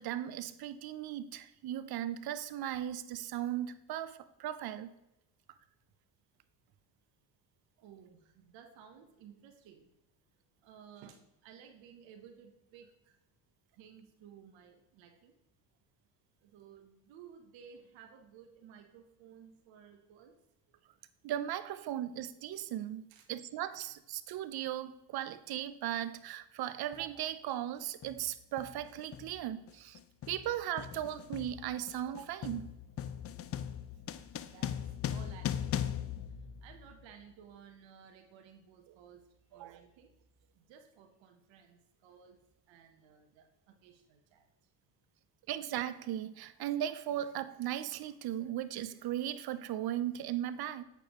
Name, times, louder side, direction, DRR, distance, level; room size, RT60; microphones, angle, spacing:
voice 1, 0.0-4.9 21.2-30.0 30.3-32.7 39.5-39.8 45.5-50.8, right 11 dB, 55° right, 13 dB, 0.7 m, -37 dB
voice 2, 7.8-9.9 10.6-13.1 13.8-15.3 16.4-20.3 23.1-23.3 34.4-34.8 35.1-35.7 36.6-39.2 39.5-40.1 40.7-42.4 42.7-44.4, right 7 dB, 70° right, 5 dB, 1.1 m, -56 dB
sound 1, 26.9-27.1 28.0-28.3 28.6-37.1, left 9 dB, 35° left, 0.4 m, -39 dB
8.2 x 6.8 x 3.0 m, 0.88 s
supercardioid pair, 80°, 47 cm